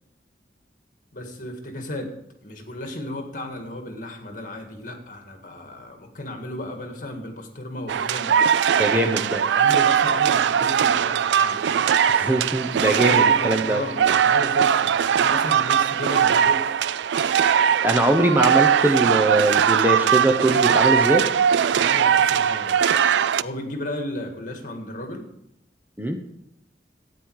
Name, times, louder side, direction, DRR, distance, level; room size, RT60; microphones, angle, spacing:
voice 1, 1.1-2.1 2.4-8.4 8.8-11.9 12.9-16.6 21.7-22.9 23.4-25.3, left 1 dB, 50° left, 4 dB, 2.0 m, -34 dB
sound 1, 7.9-23.4, right 8 dB, 85° right, 0.3 m, -20 dB
voice 2, 8.8-9.4 12.1-13.8 17.8-21.3 26.0-26.2, right 1 dB, 10° right, 5 dB, 0.9 m, -21 dB
13.0 x 9.1 x 4.8 m, 0.80 s
head